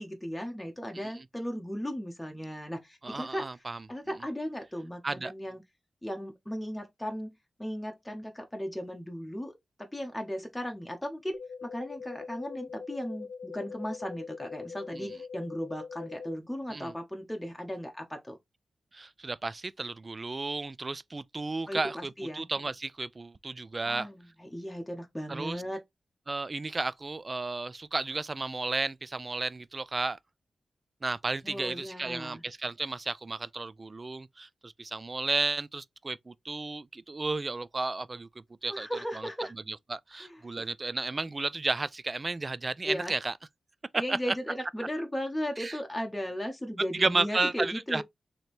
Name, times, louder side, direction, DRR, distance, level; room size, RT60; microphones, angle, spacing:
voice 1, 0.0-3.5 3.9-5.6 6.0-7.3 7.6-18.4 21.7-22.5 23.9-25.8 31.4-32.4 38.7-39.5 40.1-40.4 42.8-43.1 43.9-48.0, equal, 10° left, 0.8 m, -36 dB
voice 2, 3.0-3.8 5.0-5.3 14.9-15.2 16.7-16.9 18.9-24.1 25.3-25.6 26.3-30.2 31.0-38.9 39.2-39.3 39.7-43.3 43.9-44.2 45.6-45.8 46.9-48.0, right 3 dB, 35° right, 0.3 m, -33 dB
sound 1, 11.3-16.3, left 5 dB, 85° left, 0.5 m, -42 dB
3.2 x 2.8 x 4.2 m
cardioid pair, 75°, 0 cm